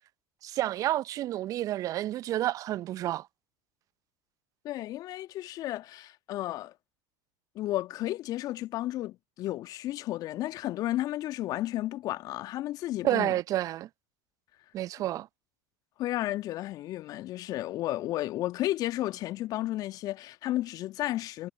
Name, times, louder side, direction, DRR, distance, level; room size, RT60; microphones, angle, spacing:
voice 1, 0.4-3.3 13.0-13.9 14.7-15.3, right 14 dB, 45° right, 0.7 m, -30 dB
voice 2, 4.6-6.7 7.6-13.4 16.0-21.5, left 15 dB, 50° left, 1.7 m, -33 dB
figure-of-eight pair, 75°, 8 cm